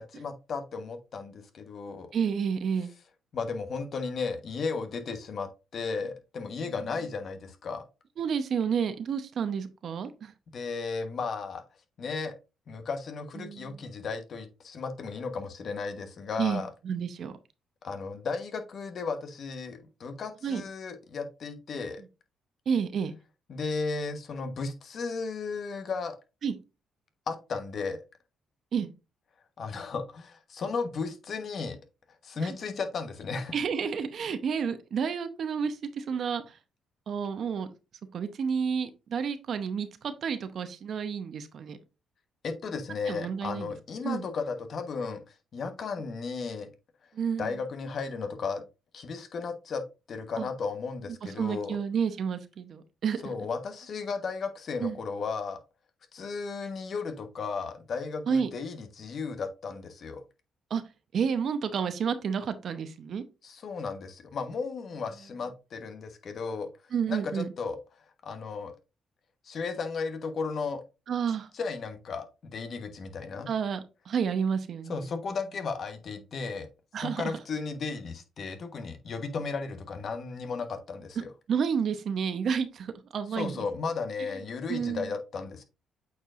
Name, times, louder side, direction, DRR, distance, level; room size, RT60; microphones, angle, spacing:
voice 1, 0.0-2.1 3.3-7.8 10.5-11.6 12.0-12.3 12.7-16.7 17.8-22.0 23.5-26.2 27.3-28.0 29.6-31.8 32.2-33.5 42.4-46.7 47.4-48.6 48.9-51.8 53.2-55.6 56.1-60.2 63.4-66.7 67.1-67.8 68.2-68.7 69.4-70.8 71.5-73.5 74.9-76.7 77.0-81.3 83.3-85.6, left 4 dB, 55° left, 1.2 m, -35 dB
voice 2, 2.1-2.9 6.7-6.8 8.2-10.3 13.4-13.9 16.4-17.3 20.4-20.6 21.7-21.8 22.7-23.1 26.4-26.5 28.7-28.9 33.5-36.6 37.1-37.7 38.1-41.8 43.1-43.7 44.0-44.3 47.1-47.6 50.4-50.5 51.2-53.3 54.8-55.0 58.3-58.5 60.7-60.8 61.1-63.2 66.9-67.5 71.1-71.5 73.5-75.1 76.9-77.4 81.5-83.7 84.7-85.1, right 6 dB, 60° right, 0.8 m, -30 dB
8.3 x 4.6 x 2.5 m
cardioid pair, 90°, 0 cm